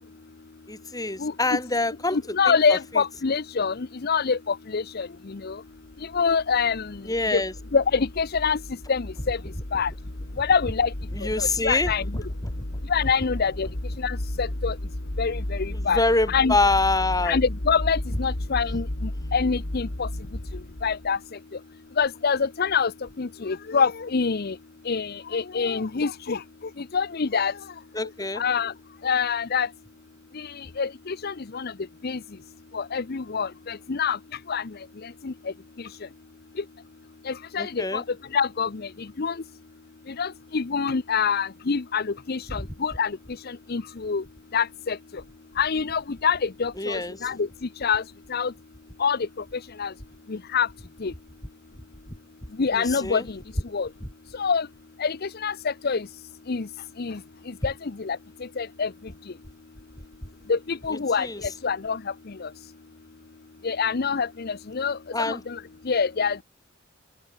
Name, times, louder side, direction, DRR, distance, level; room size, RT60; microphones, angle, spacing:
voice 1, 0.7-2.2 2.7-2.8 7.1-7.5 11.2-11.9 15.7-17.4 27.9-28.4 37.6-38.0 46.8-47.2 52.7-53.2 60.9-61.4 65.1-65.4, left 2 dB, 20° left, 4.8 m, -25 dB
voice 2, 1.2-1.6 2.1-5.6 6.0-7.0 7.3-7.4 7.7-8.6 8.9-9.4 9.7-9.9 10.4-10.9 11.2-12.1 12.9-13.7 14.0-14.8 15.2-16.0 16.3-16.6 17.2-20.1 20.8-21.2 22.0-22.9 23.2-24.6 24.9-26.4 26.8-27.6 28.4-28.7 29.0-29.7 30.3-31.7 32.0-32.2 32.7-34.7 35.0-35.3 35.8-35.9 36.6-36.7 37.2-38.0 38.3-39.4 40.1-43.2 43.4-44.2 44.5-45.0 45.6-47.5 47.8-48.0 48.3-48.5 49.0-49.3 49.5-49.9 50.3-50.7 51.0-51.1 52.6-53.4 53.7-53.9 54.3-54.7 55.0-56.1 56.5-56.7 57.0-57.2 57.5-58.2 58.6-58.9 60.5-62.1 62.4-62.5 63.6-66.4, left 5 dB, 50° left, 0.7 m, -26 dB
sound 1, 5.9-21.2, left 1 dB, 70° left, 2.5 m, -33 dB
open air
head